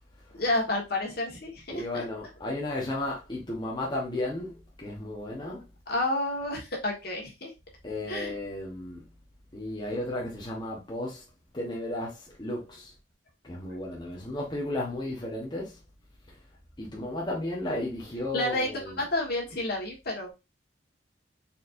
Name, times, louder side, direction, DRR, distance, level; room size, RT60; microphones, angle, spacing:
voice 1, 0.3-2.0 5.9-7.5 8.1-8.3 18.3-20.3, left 1 dB, 60° left, 1.5 m, -30 dB
voice 2, 1.7-5.7 7.8-9.0 9.5-11.2 11.5-12.9 13.4-15.8 16.8-19.1, left 1 dB, 25° left, 1.0 m, -34 dB
4.2 x 4.2 x 2.6 m
head